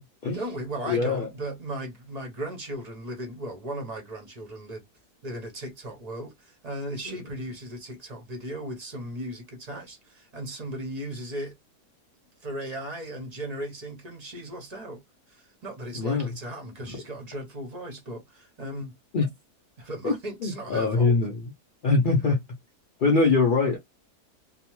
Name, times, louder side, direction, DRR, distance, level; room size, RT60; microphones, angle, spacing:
voice 1, 0.3-4.8 5.2-11.5 12.4-15.0 15.3-18.9 19.8-21.2, right 1 dB, 40° right, 0.6 m, -36 dB
voice 2, 0.9-1.3 7.1-7.2 15.9-16.3 16.9-17.0 19.1-19.3 20.0-20.1 20.4-21.3 21.8-22.4 23.0-23.8, left 3 dB, 80° left, 0.4 m, -23 dB
2.8 x 2.0 x 2.9 m
omnidirectional pair, 1.6 m